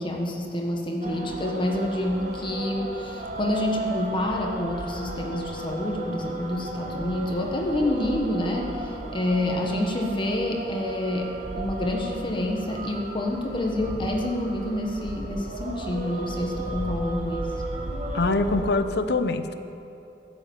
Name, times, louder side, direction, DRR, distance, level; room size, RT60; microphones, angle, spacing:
voice 1, 0.0-17.6, left 1 dB, 30° left, 1 dB, 1.4 m, -28 dB
sound 1, 1.0-18.7, right 1 dB, 40° right, 1.6 m, -34 dB
voice 2, 18.1-19.5, left 3 dB, 65° left, 9 dB, 0.8 m, -24 dB
15.0 x 7.8 x 9.2 m, 2.9 s
head